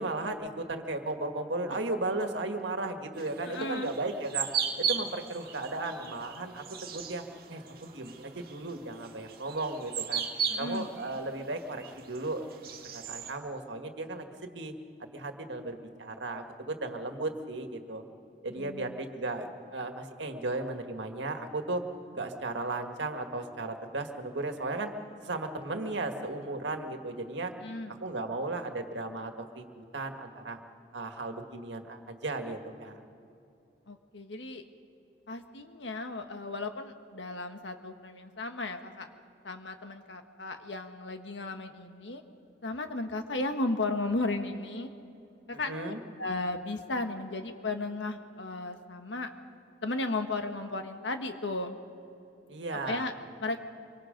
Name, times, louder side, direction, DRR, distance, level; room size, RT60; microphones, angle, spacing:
voice 1, 0.0-4.5 4.9-7.2 7.5-10.2 10.6-12.5 12.9-14.7 15.1-18.0 18.4-21.8 22.1-24.9 25.2-27.5 28.0-30.6 30.9-33.0 45.7-46.0 52.5-53.0, right 2 dB, 85° right, 5 dB, 1.8 m, -35 dB
sound 1, 3.2-13.3, right 7 dB, 50° right, 1.5 m, -37 dB
voice 2, 3.5-3.9 10.5-10.9 18.6-19.0 27.6-28.0 33.9-34.6 35.3-39.1 39.4-42.2 42.6-44.9 45.5-49.3 49.8-51.8 52.8-53.1 53.4-53.6, left 2 dB, 85° left, 6 dB, 1.6 m, -35 dB
26.0 x 23.5 x 5.2 m, 2.7 s
head